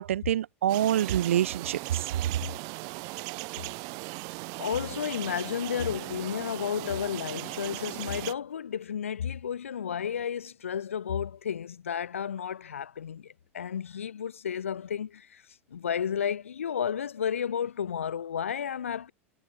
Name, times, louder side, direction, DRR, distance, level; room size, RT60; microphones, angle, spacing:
voice 1, 0.0-2.0, right 11 dB, 80° right, 1.2 m, -26 dB
sound 1, 0.7-8.3, right 33 dB, 60° right, 3.8 m, -38 dB
voice 2, 4.6-19.1, left 8 dB, 85° left, 0.9 m, -32 dB
hypercardioid pair, 85°, 7 cm